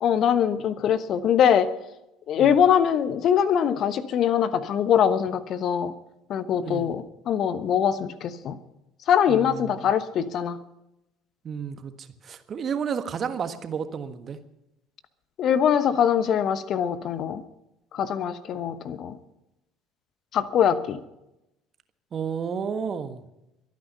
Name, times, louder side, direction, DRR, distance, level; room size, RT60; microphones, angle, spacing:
voice 1, 0.0-1.7 2.3-5.9 6.3-8.6 9.1-10.6 15.4-17.4 17.9-19.1 20.3-21.0, left 8 dB, 50° left, 14 dB, 1.0 m, -23 dB
voice 2, 6.6-7.0 9.3-9.8 11.4-14.4 22.1-23.2, right 7 dB, 40° right, 9 dB, 1.5 m, -32 dB
24.0 x 9.4 x 5.6 m, 0.89 s
figure-of-eight pair, 60°, 0 cm